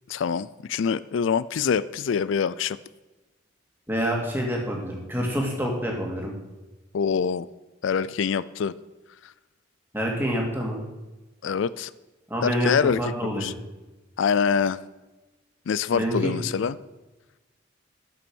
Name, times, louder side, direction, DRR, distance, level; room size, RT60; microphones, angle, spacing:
voice 1, 0.1-2.8 6.9-7.5 7.8-8.7 11.4-11.9 12.4-13.0 13.3-13.5 14.2-14.8 15.7-16.8, left 6 dB, 70° left, 17 dB, 0.4 m, -25 dB
voice 2, 3.9-6.3 9.9-10.8 12.3-13.5 15.9-16.3, equal, 10° right, -1 dB, 2.2 m, -27 dB
12.0 x 6.9 x 6.2 m, 1.1 s
head